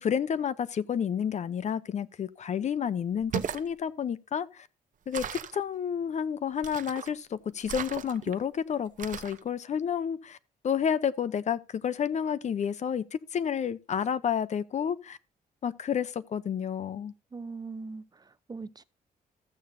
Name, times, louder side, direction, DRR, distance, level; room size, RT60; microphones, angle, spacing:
voice 1, 0.0-4.7 5.1-10.4 10.6-15.2 15.6-17.1, left 8 dB, 50° left, 0.7 m, -30 dB
sound 1, 3.2-3.7 5.1-5.6 6.6-7.1 7.6-8.4 9.0-9.4, right 8 dB, 60° right, 0.9 m, -36 dB
voice 2, 17.3-18.8, right 4 dB, 25° right, 0.7 m, -41 dB
13.5 x 8.5 x 2.7 m
cardioid pair, 100°, 15 cm